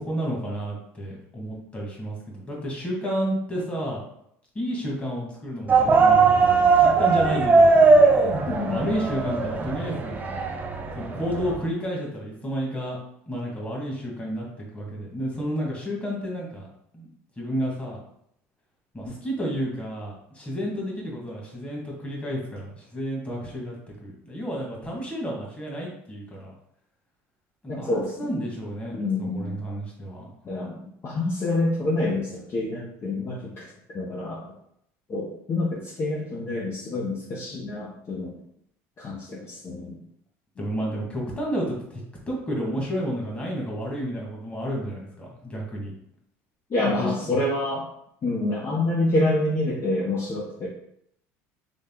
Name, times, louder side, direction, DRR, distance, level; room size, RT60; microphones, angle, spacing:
voice 1, 0.0-4.0 4.6-7.7 8.7-10.1 10.9-13.0 13.3-16.7 16.9-17.1 17.4-18.0 18.9-26.5 27.6-29.0 29.3-30.3 40.6-45.9 47.0-47.1, equal, 20° left, -3 dB, 1.9 m, -31 dB
sound 1, 5.7-11.6, right 4 dB, 25° right, 0.8 m, -19 dB
voice 2, 8.5-8.8 27.7-28.3 28.9-29.5 30.4-30.8 31.0-34.5 35.1-38.4 39.0-40.0 46.7-47.9 48.2-50.7, left 2 dB, 40° left, -3 dB, 0.9 m, -27 dB
4.0 x 3.4 x 3.7 m, 0.73 s
supercardioid pair, 105°, 7 cm